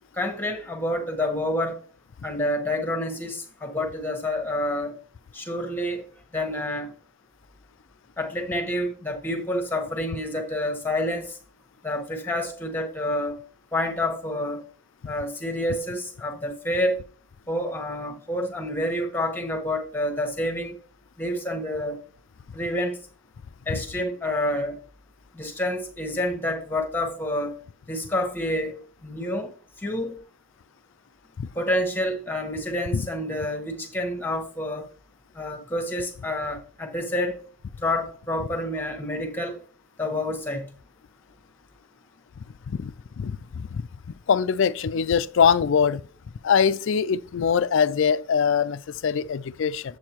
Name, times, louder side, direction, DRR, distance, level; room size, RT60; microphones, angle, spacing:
voice 1, 0.1-1.8 2.2-5.0 5.3-6.0 6.3-6.9 8.2-11.4 11.8-13.4 13.7-14.6 15.0-17.0 17.5-20.8 21.2-22.0 22.5-23.0 23.6-24.8 25.3-27.6 27.9-29.5 29.8-30.2 31.5-34.9 35.3-37.4 37.8-39.6 40.0-40.7, left 1 dB, 10° left, 1.3 m, -28 dB
voice 2, 43.2-43.8 44.3-46.0 46.4-49.8, left 7 dB, 60° left, 0.4 m, -22 dB
8.6 x 7.6 x 3.0 m
head